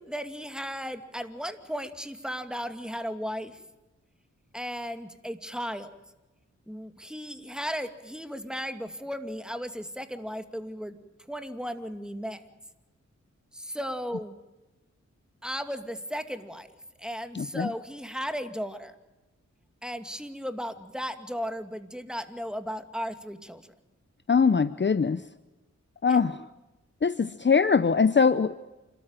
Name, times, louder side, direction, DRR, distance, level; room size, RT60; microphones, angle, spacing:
voice 1, 0.0-3.6 4.5-5.9 6.7-11.0 11.3-12.5 13.5-14.4 15.4-16.7 17.0-18.9 19.8-23.6 26.1-26.2, equal, 5° right, 8 dB, 2.5 m, -35 dB
voice 2, 17.3-17.7 24.3-25.2 26.0-26.4 27.0-28.5, left 5 dB, 40° left, 14 dB, 0.8 m, -22 dB
28.5 x 13.5 x 9.0 m, 1.1 s
cardioid pair, 45°, 30 cm